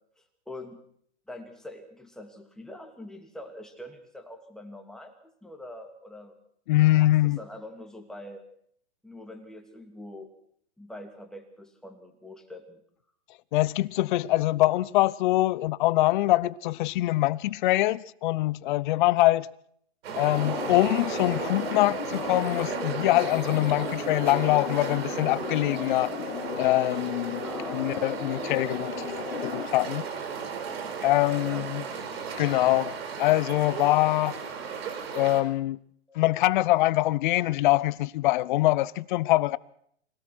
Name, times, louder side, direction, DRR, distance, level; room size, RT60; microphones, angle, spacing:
voice 1, 0.2-0.8 1.3-6.4 7.0-8.4 9.0-10.3 10.8-12.8 27.4-28.2 31.4-31.7 36.1-36.2, left 1 dB, ahead, 2.9 m, -44 dB
voice 2, 6.7-7.4 13.5-19.5 20.2-26.1 26.6-27.4 27.7-30.0 31.0-31.8 32.4-32.9 33.2-34.4 35.1-35.8 36.1-39.6, left 17 dB, 45° left, 0.7 m, -24 dB
sound 1, 20.0-35.4, right 6 dB, 65° right, 5.4 m, -35 dB
sound 2, 20.2-29.8, left 7 dB, 80° left, 3.0 m, -36 dB
24.5 x 17.5 x 6.2 m
hypercardioid pair, 135°, 34 cm